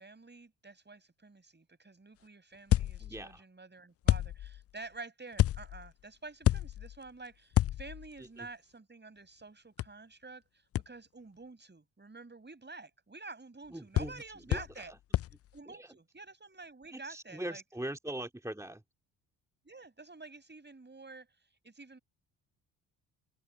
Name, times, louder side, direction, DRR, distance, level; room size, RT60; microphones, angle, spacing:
voice 1, 0.0-14.9 15.5-17.6 19.6-21.3 21.6-22.0, right 3 dB, 25° right, 5.8 m, -49 dB
sound 1, 2.7-3.4 4.1-4.7 5.4-5.9 6.4-7.1 7.5-8.2 9.8-9.9 10.7-10.8 14.0-14.2 14.5-14.9 15.1-15.4, left 13 dB, 35° left, 0.4 m, -29 dB
voice 2, 3.0-3.4 8.2-8.5 13.7-14.2 14.5-15.0 15.7-15.9 16.9-18.8, right 1 dB, 5° right, 2.6 m, -42 dB
open air
hypercardioid pair, 50°, 44 cm